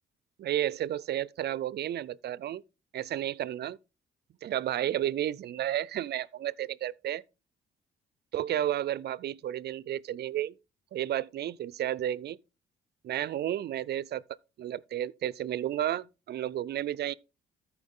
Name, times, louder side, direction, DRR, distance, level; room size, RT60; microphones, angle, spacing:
voice 1, 0.4-2.6 2.9-3.8 4.4-7.2 8.3-10.5 10.9-12.4 13.0-14.2 14.6-17.1, right 12 dB, 55° right, 0.4 m, -32 dB
13.5 x 4.7 x 3.6 m
cardioid pair, 90°, 20 cm